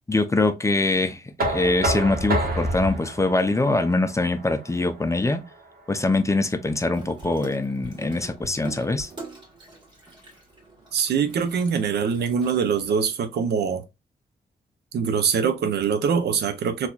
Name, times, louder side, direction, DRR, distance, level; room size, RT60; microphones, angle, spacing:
voice 1, 0.1-5.4 5.9-9.1, left 2 dB, 20° left, 0.6 m, -23 dB
Knock, 1.4-7.2, right 1 dB, 65° right, 1.4 m, -30 dB
Water tap faucet / Sink (filling or washing), 6.9-13.0, right 2 dB, 25° right, 1.7 m, -44 dB
voice 2, 10.9-13.8 14.9-16.9, right 6 dB, 90° right, 0.6 m, -23 dB
4.0 x 2.9 x 2.3 m
cardioid pair, 90°, 16 cm